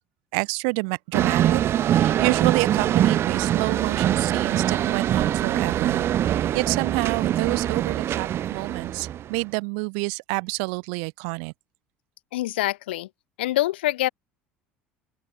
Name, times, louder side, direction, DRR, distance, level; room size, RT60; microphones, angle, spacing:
voice 1, 0.3-11.5, right 40 dB or more, 70° right, 2.5 m, -28 dB
sound 1, 1.1-9.4, right 11 dB, 45° right, 0.9 m, -23 dB
voice 2, 12.3-13.1 13.4-14.1, left 16 dB, 80° left, 2.3 m, -25 dB
open air
hypercardioid pair, 70°, 6 cm